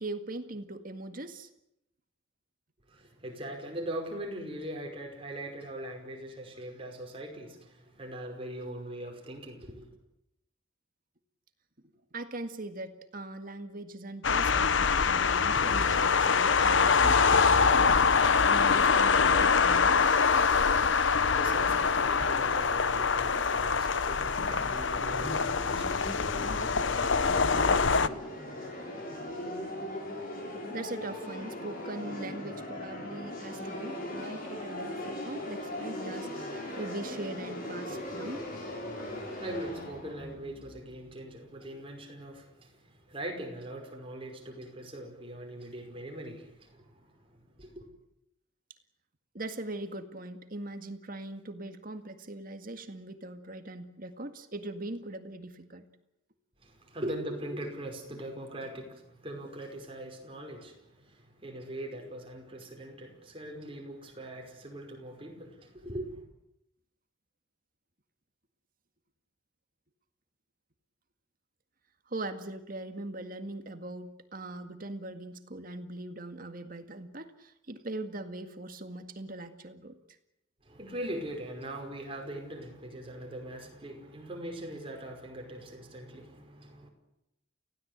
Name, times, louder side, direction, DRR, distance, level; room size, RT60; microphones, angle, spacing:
voice 1, 0.0-1.5 12.1-20.2 30.7-38.4 49.3-55.9 72.1-80.0, right 2 dB, 45° right, 8 dB, 2.0 m, -41 dB
voice 2, 2.9-9.8 21.2-27.2 39.1-47.9 56.6-66.3 80.6-86.9, right 1 dB, 30° right, 2 dB, 5.3 m, -41 dB
sound 1, 14.2-28.1, left 5 dB, 70° left, 0.9 m, -24 dB
sound 2, 23.9-41.6, left 1 dB, 45° left, 7.0 m, -39 dB
29.5 x 16.5 x 8.2 m, 0.84 s
head